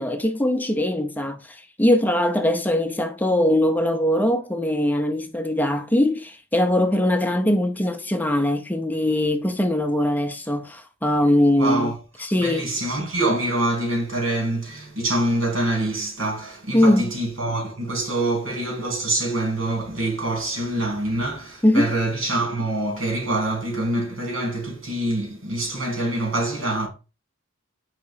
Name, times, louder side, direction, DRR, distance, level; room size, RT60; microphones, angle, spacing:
voice 1, 0.0-11.9 12.2-12.8 16.7-17.1 21.6-21.9, left 1 dB, 10° left, 0.5 m, -21 dB
voice 2, 11.5-12.0 12.4-26.9, right 2 dB, 80° right, 2.9 m, -25 dB
4.8 x 3.7 x 5.6 m
head